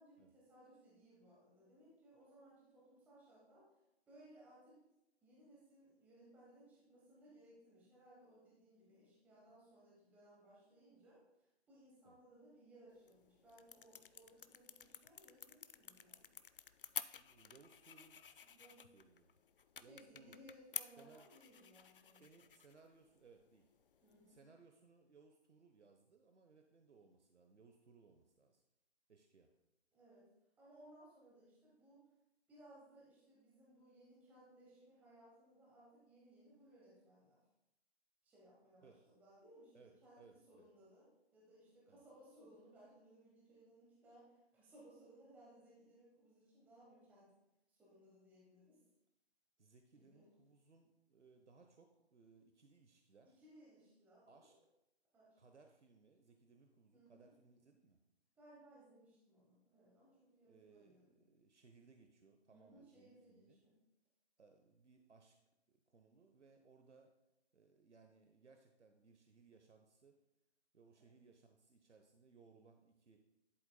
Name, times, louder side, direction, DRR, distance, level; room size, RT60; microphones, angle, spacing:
voice 1, 0.0-3.7 4.1-4.8 5.2-16.3 18.5-18.9 19.8-22.3 24.0-24.4 29.9-30.3 30.6-32.0 32.5-37.4 38.2-47.3 47.7-48.8 49.9-50.3 53.2-54.6 55.1-55.4 56.9-57.3 58.4-61.1 62.5-63.8 70.9-71.2, right 1 dB, 5° right, -6 dB, 1.1 m, -64 dB
sound 1, 12.9-24.4, left 7 dB, 50° left, 0.4 m, -52 dB
voice 2, 17.1-18.2 18.9-19.3 19.8-20.4 21.0-21.3 22.2-23.7 24.3-28.6 29.1-29.5 38.8-39.0 39.7-40.7 41.9-42.0 49.6-53.4 54.3-54.5 55.4-58.0 60.4-63.6 64.4-65.4 65.7-67.1 67.5-70.2 70.7-73.2, right 4 dB, 85° right, 4 dB, 1.0 m, -66 dB
11.5 x 7.8 x 2.2 m, 0.90 s
figure-of-eight pair, 145°, 34 cm